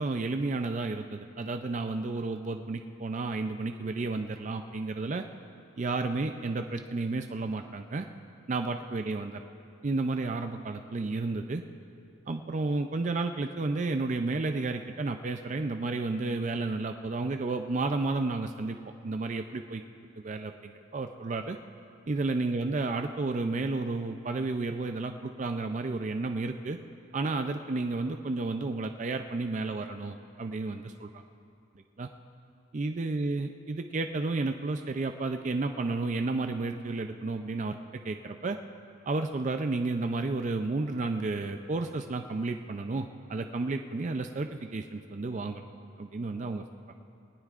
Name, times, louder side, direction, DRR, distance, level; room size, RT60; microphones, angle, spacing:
voice 1, 0.0-5.2 5.8-8.1 8.5-9.4 9.8-11.6 12.3-18.8 19.0-19.8 20.2-21.6 22.1-26.8 27.1-31.2 32.0-32.1 32.7-37.8 38.0-38.6 39.1-45.6 46.0-46.6, right 3 dB, 35° right, 6 dB, 0.4 m, -32 dB
20.0 x 18.5 x 2.5 m, 2.6 s
head